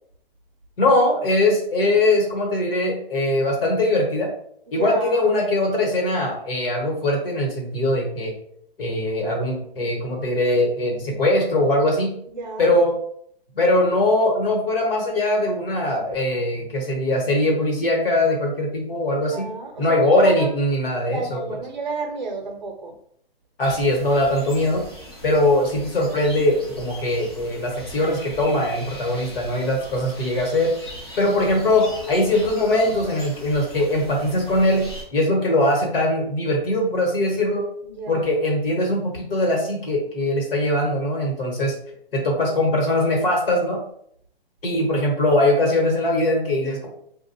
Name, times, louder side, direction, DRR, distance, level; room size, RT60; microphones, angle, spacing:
voice 1, 0.8-4.3 4.7-8.3 8.8-12.1 12.6-12.9 13.5-19.5 19.8-21.4 23.6-24.8 25.2-30.7 31.2-37.7 38.1-41.8 42.1-43.8 44.6-46.9, left 1 dB, 65° left, 0 dB, 1.4 m, -21 dB
voice 2, 4.7-5.3 12.3-12.7 19.1-20.5 21.0-22.9 37.8-38.3 44.9-45.1, right 3 dB, 50° right, 3 dB, 0.6 m, -31 dB
sound 1, 23.6-35.0, equal, 25° left, 0.5 m, -40 dB
3.4 x 2.5 x 2.7 m, 0.67 s
hypercardioid pair, 175°, 30 cm